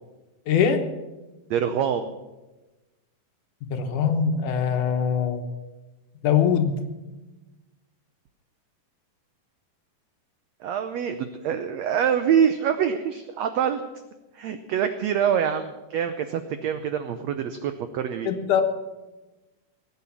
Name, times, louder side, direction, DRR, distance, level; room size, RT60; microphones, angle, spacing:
voice 1, 0.5-0.9 3.7-5.5 6.2-6.8 18.2-18.6, left 7 dB, 70° left, 6 dB, 2.5 m, -22 dB
voice 2, 1.5-2.1 10.6-13.8 14.3-18.3, right 8 dB, 90° right, 9 dB, 1.5 m, -25 dB
19.0 x 8.7 x 7.1 m, 1.1 s
omnidirectional pair, 4.0 m